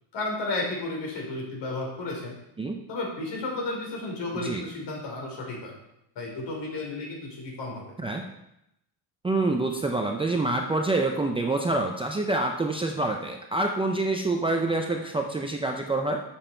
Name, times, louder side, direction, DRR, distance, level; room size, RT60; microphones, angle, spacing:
voice 1, 0.1-2.4 2.9-5.7 6.2-7.9, left 2 dB, 60° left, -1 dB, 3.9 m, -33 dB
voice 2, 9.2-16.2, right 2 dB, 10° right, 2 dB, 0.5 m, -26 dB
11.0 x 7.3 x 4.4 m, 0.83 s
cardioid pair, 160°, 48 cm